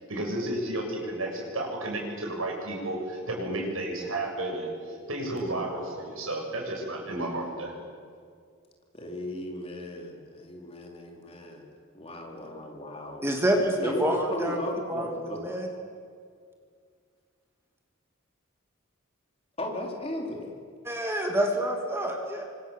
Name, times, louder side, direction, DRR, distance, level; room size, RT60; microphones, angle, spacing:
voice 1, 0.1-7.7, right 1 dB, 75° right, 0 dB, 7.7 m, -32 dB
voice 2, 8.9-13.2 13.8-15.5 19.6-20.6, left 1 dB, 30° left, 1 dB, 4.0 m, -36 dB
voice 3, 13.2-14.6 14.9-15.1 15.4-15.7 20.8-22.4, right 1 dB, 10° right, 1 dB, 2.8 m, -27 dB
29.0 x 25.5 x 7.5 m, 2.1 s
head